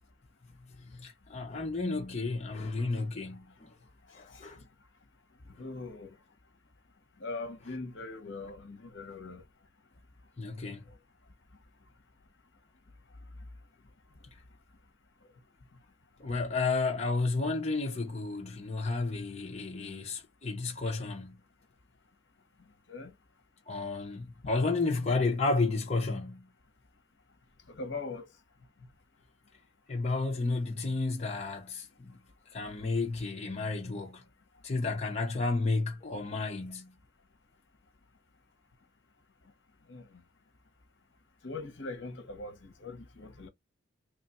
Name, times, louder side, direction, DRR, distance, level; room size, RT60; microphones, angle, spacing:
voice 1, 0.8-3.7 4.1-4.6 10.4-10.8 16.2-21.4 23.7-26.5 29.9-32.2 32.5-34.2 34.6-36.9, left 3 dB, 35° left, 0.7 m, -32 dB
voice 2, 4.1-4.4 5.6-6.1 7.2-9.4 22.9-23.1 27.7-28.3 39.9-40.1 41.4-43.5, left 3 dB, 70° left, 0.8 m, -41 dB
3.0 x 2.4 x 4.0 m
head